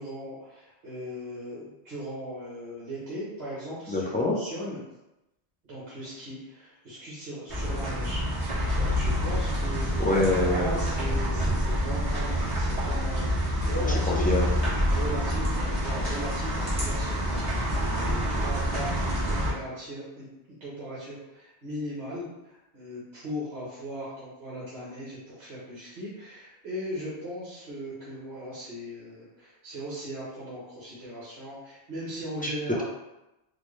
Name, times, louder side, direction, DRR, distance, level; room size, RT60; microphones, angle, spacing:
voice 1, 0.0-4.8 5.6-8.5 8.8-9.9 10.5-14.3 14.9-32.8, equal, 65° right, -9 dB, 1.4 m, -38 dB
voice 2, 3.9-4.3 10.0-10.9 13.8-14.5 32.4-32.5, left 2 dB, 15° left, -4 dB, 0.3 m, -26 dB
sound 1, 7.5-19.5, equal, 30° right, 1.4 m, -27 dB
4.5 x 2.1 x 3.1 m, 0.95 s
omnidirectional pair, 1.1 m